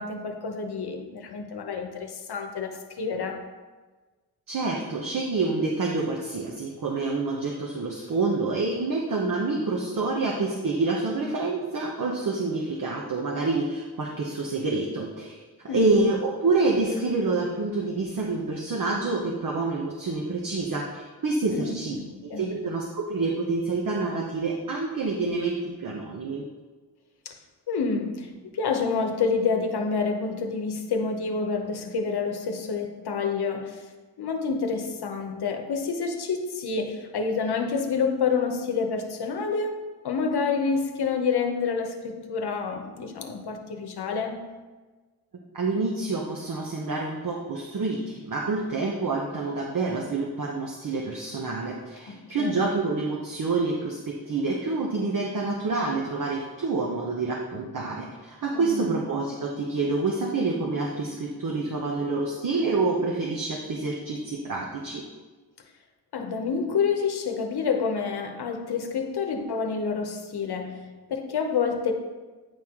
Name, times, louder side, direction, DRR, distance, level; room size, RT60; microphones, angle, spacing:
voice 1, 0.0-3.4 15.7-16.0 21.5-22.5 27.2-27.4 27.7-33.9 34.2-44.5 52.1-52.7 58.5-58.8 66.1-71.9, left 5 dB, 75° left, 0.9 m, -28 dB
voice 2, 4.5-15.4 15.6-26.4 45.5-65.0, right 3 dB, 55° right, 1.0 m, -27 dB
9.4 x 4.4 x 3.6 m
cardioid pair, 80°, 39 cm